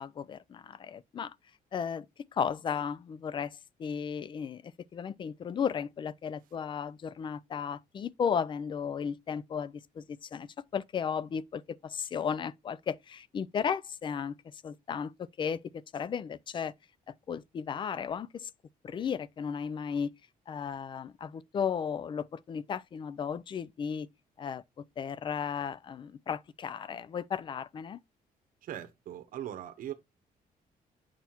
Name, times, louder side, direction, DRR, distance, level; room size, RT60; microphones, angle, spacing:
voice 1, 0.0-1.3 1.7-2.1 2.3-14.4 14.6-16.7 17.3-18.5 18.8-20.1 20.5-24.1 24.4-24.6 25.0-28.0, left 7 dB, 35° left, 0.4 m, -35 dB
voice 2, 28.6-29.9, right 11 dB, 65° right, 0.9 m, -40 dB
7.4 x 5.7 x 2.9 m
cardioid pair, 155°, 15 cm